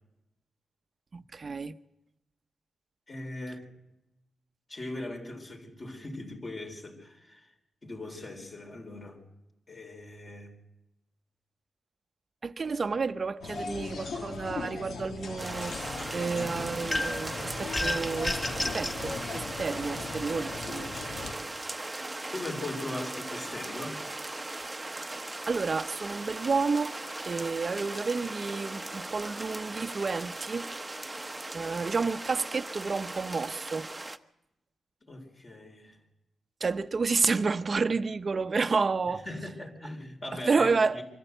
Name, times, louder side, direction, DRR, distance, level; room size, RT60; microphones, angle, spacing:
voice 1, 1.1-1.7 12.4-20.9 24.6-25.1 25.5-27.0 27.2-30.7 31.5-33.9 36.6-39.2 40.3-41.0, right 4 dB, 40° right, 0.8 m, -30 dB
voice 2, 3.1-3.7 4.7-7.5 7.8-9.2 9.7-10.5 22.3-24.0 35.0-36.0 39.3-41.0, left 2 dB, 35° left, 3.9 m, -40 dB
sound 1, 13.4-21.3, left 4 dB, 75° left, 1.9 m, -39 dB
sound 2, 15.4-34.2, right 2 dB, 15° right, 0.9 m, -38 dB
sound 3, 16.9-17.3 17.7-19.0, left 1 dB, 20° left, 1.9 m, -31 dB
24.5 x 13.5 x 7.9 m
cardioid pair, 90°, 0 cm